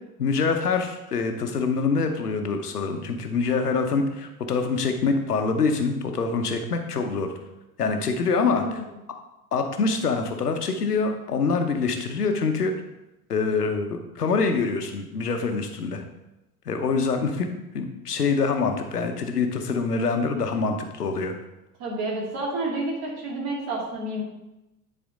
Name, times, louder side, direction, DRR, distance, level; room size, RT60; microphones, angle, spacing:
voice 1, 0.2-7.3 7.8-8.8 9.5-12.7 13.3-16.0 16.7-17.5 17.7-21.4, left 4 dB, 90° left, 5 dB, 0.9 m, -25 dB
voice 2, 8.4-8.9 21.8-24.2, right 2 dB, 55° right, -4 dB, 2.7 m, -30 dB
9.7 x 4.3 x 3.8 m, 0.95 s
figure-of-eight pair, 70°, 45 cm